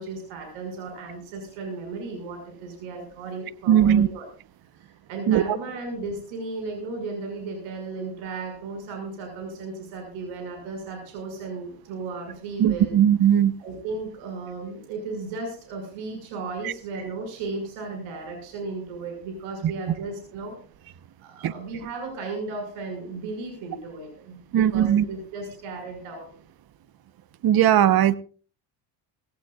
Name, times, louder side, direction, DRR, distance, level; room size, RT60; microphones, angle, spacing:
voice 1, 0.0-4.3 4.7-13.0 13.6-20.6 21.2-26.3, right 3 dB, 85° right, 4 dB, 6.1 m, -35 dB
voice 2, 3.7-4.1 5.3-5.4 12.6-13.5 16.6-16.7 21.4-21.5 24.5-25.1 27.4-28.2, right 10 dB, 45° right, 14 dB, 1.1 m, -18 dB
19.0 x 17.5 x 2.4 m, 0.39 s
cardioid pair, 100°, 49 cm